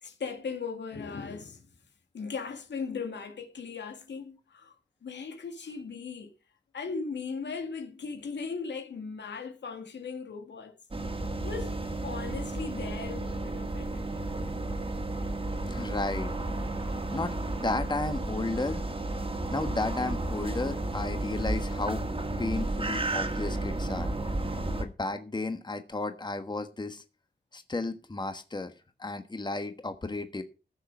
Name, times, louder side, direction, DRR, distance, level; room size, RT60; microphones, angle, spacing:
voice 1, 0.0-1.6 2.1-4.7 5.0-6.3 6.7-10.7 11.4-14.4 24.3-24.4, left 5 dB, 90° left, 2.1 m, -38 dB
sound 1, 10.9-24.8, right 2 dB, 30° right, 2.2 m, -32 dB
voice 2, 15.7-16.3 17.1-18.8 19.5-22.0 22.4-24.1 24.8-27.0 27.5-28.7 29.0-30.4, left 2 dB, 25° left, 1.4 m, -33 dB
15.0 x 6.7 x 5.4 m
wide cardioid pair, 90°, 18 cm